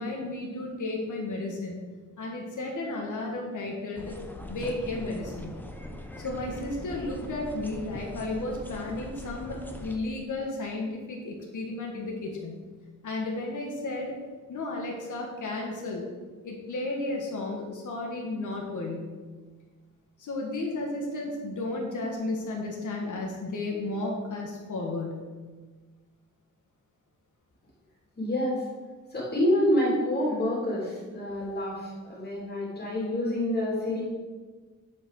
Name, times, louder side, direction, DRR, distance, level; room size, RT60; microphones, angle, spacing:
voice 1, 0.0-1.8 2.2-4.2 4.5-5.6 6.2-12.7 13.0-14.2 14.5-16.1 16.4-19.1 20.2-25.2, left 2 dB, 70° left, -1 dB, 1.8 m, -33 dB
sound 1, 3.9-10.0, equal, 5° left, 0.8 m, -41 dB
voice 2, 28.2-28.6 29.1-34.0, left 1 dB, 30° left, -5 dB, 2.7 m, -27 dB
10.0 x 5.4 x 6.5 m, 1.4 s
wide cardioid pair, 180°, 31 cm